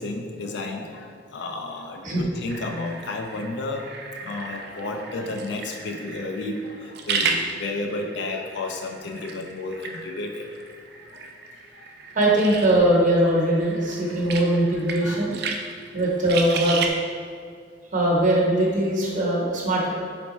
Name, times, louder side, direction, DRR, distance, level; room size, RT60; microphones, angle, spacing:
voice 1, 0.0-3.9 4.2-10.5 11.1-11.3 11.7-11.9 13.9-14.3 14.7-15.3 15.6-15.8, left 2 dB, 65° left, 3 dB, 0.4 m, -32 dB
sound 1, 2.5-16.9, right 5 dB, 60° right, 0.4 m, -34 dB
voice 2, 12.1-15.3 15.9-16.8 17.9-19.9, right 1 dB, 45° right, -4 dB, 0.9 m, -21 dB
3.3 x 3.3 x 4.1 m, 2.2 s
head